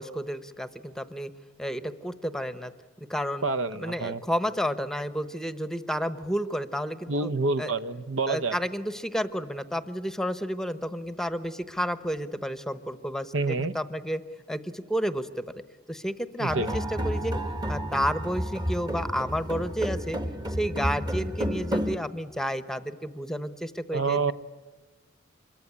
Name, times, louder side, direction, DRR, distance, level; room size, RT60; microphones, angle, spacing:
voice 1, 0.0-1.3 1.6-2.7 3.1-3.4 3.8-7.3 7.6-7.7 8.3-14.2 14.5-15.6 15.9-17.4 17.7-20.2 20.5-24.3, equal, 5° left, 12 dB, 0.9 m, -31 dB
voice 2, 3.4-4.2 7.1-8.5 13.3-13.7 16.4-16.7 23.9-24.3, right 3 dB, 70° right, 13 dB, 0.8 m, -27 dB
sound 1, 16.5-22.0, equal, 20° right, 1.2 m, -31 dB
26.5 x 22.5 x 9.9 m, 1.2 s
head